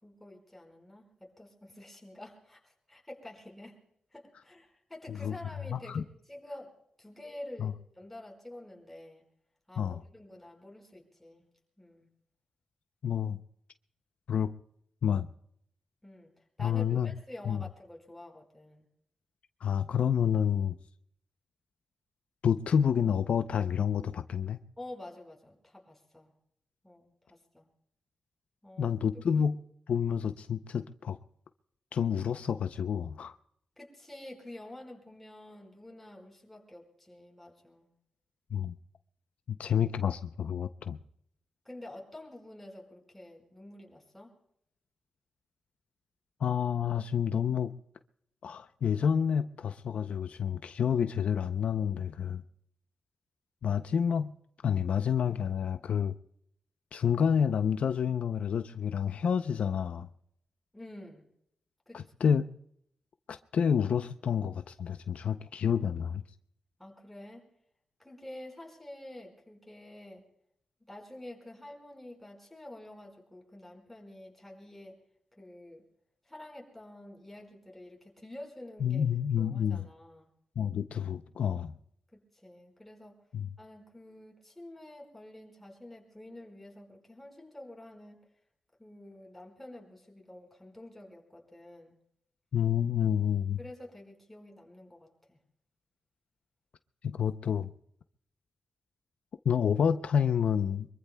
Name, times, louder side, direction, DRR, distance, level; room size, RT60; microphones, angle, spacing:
voice 1, 0.0-3.8 4.1-9.2 9.7-11.4 11.8-12.1 16.0-16.3 16.6-18.8 24.8-26.3 26.8-27.7 28.6-29.0 29.3-29.5 33.8-37.9 41.6-44.3 60.7-61.2 61.9-62.0 66.8-67.4 68.0-70.2 70.8-75.0 75.4-75.8 76.2-79.1 79.4-80.3 82.1-83.2 83.6-88.2 88.8-91.9 93.6-95.4, left 1 dB, 5° left, 4.9 m, -48 dB
voice 2, 5.7-6.0 7.6-7.7 9.8-10.0 13.0-13.4 14.3-14.5 15.0-15.3 16.6-17.1 17.5-17.6 19.6-20.8 22.4-24.6 28.8-29.6 29.9-31.2 31.9-33.4 38.5-38.7 39.5-41.0 46.4-47.7 48.4-52.4 53.6-54.3 54.6-56.1 56.9-60.1 61.9-62.5 63.3-66.2 78.8-79.9 80.6-81.7 83.3-83.5 92.5-93.6 97.0-97.7 99.4-100.9, left 8 dB, 75° left, 0.5 m, -29 dB
24.5 x 23.0 x 2.2 m
wide cardioid pair, 110°, 2 cm